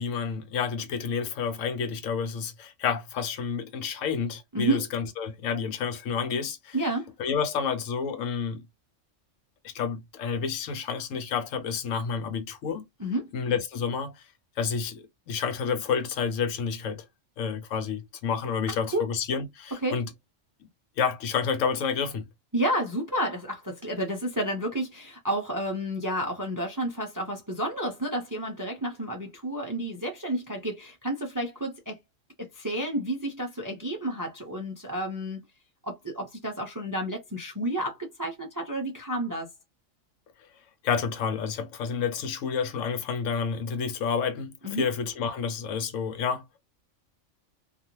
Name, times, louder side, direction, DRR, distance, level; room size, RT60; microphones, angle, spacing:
voice 1, 0.0-6.8 7.2-8.6 9.6-12.9 13.3-14.1 14.6-17.0 17.4-20.1 21.0-22.3 40.8-46.6, left 6 dB, 85° left, 1.0 m, -29 dB
voice 2, 4.5-4.9 6.7-7.1 13.0-13.3 18.7-19.0 19.7-20.0 22.5-32.0 32.4-35.4 35.8-39.5 44.6-44.9, right 1 dB, 30° right, 0.3 m, -30 dB
2.5 x 2.3 x 2.8 m
omnidirectional pair, 1.3 m